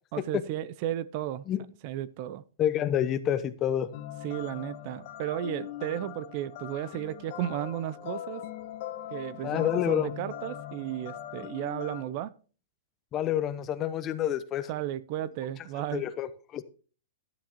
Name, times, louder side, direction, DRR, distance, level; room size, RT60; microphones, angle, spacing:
voice 1, 0.1-1.5 1.8-2.4 4.2-8.4 9.1-12.3 14.7-16.0, right 12 dB, 45° right, 0.6 m, -34 dB
voice 2, 2.6-3.9 9.4-10.1 13.1-14.7 15.9-16.6, left 10 dB, 25° left, 0.9 m, -28 dB
sound 1, 3.9-12.0, left 12 dB, 50° left, 1.3 m, -41 dB
12.0 x 9.8 x 3.0 m
hypercardioid pair, 135°, 0 cm